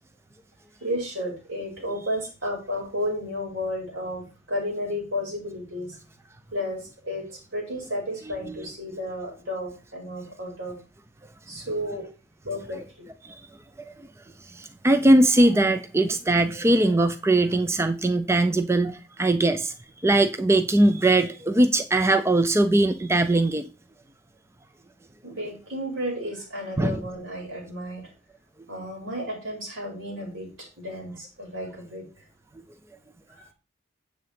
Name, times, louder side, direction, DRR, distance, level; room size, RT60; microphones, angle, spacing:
voice 1, 0.8-6.0 6.5-10.8 11.5-12.0 12.4-13.1 25.2-28.1 28.7-32.0 33.4-33.5, equal, 80° right, 5.1 m, -32 dB
voice 2, 14.5-19.7 20.0-23.7 26.8-27.0, right 2 dB, 15° right, 0.4 m, -21 dB
9.4 x 7.8 x 3.4 m
head